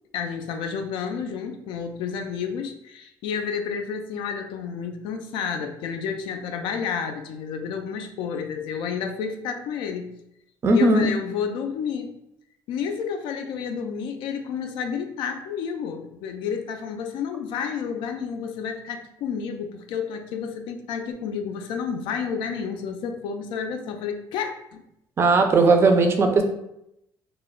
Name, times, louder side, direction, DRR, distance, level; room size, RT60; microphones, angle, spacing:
voice 1, 0.1-10.1 10.7-12.1 12.7-24.8, left 6 dB, 75° left, 6 dB, 0.4 m, -30 dB
voice 2, 10.6-11.1 25.2-26.4, right 3 dB, 30° right, 5 dB, 0.4 m, -17 dB
2.2 x 2.0 x 3.7 m, 0.82 s
cardioid pair, 145°, 8 cm